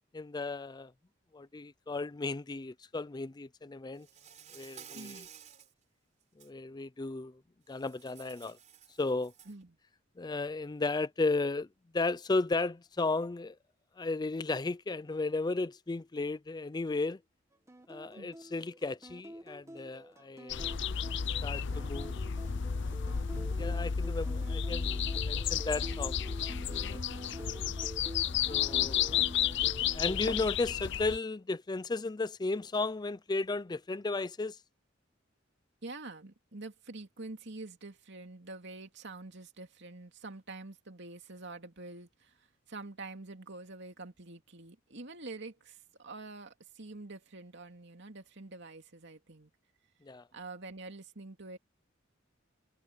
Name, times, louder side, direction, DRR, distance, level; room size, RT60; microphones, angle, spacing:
voice 1, 0.1-0.9 1.3-4.1 4.5-5.2 6.4-7.3 7.7-8.6 9.0-9.3 10.2-11.7 11.9-13.6 14.0-17.2 17.9-20.7 21.4-22.1 23.6-26.2 26.6-27.0 28.5-29.4 29.9-34.6 50.0-50.2, left 3 dB, 20° left, 0.4 m, -34 dB
Insect, 4.0-5.7 6.2-6.5 7.7-9.6, right 9 dB, 40° right, 4.2 m, -53 dB
voice 2, 4.9-5.3 9.5-9.8 18.1-18.3 35.8-49.5 50.3-51.6, right 3 dB, 65° right, 2.7 m, -46 dB
sound 1, 17.7-30.2, right 1 dB, 15° right, 1.6 m, -47 dB
sound 2, 20.5-31.2, left 8 dB, 65° left, 0.7 m, -32 dB
head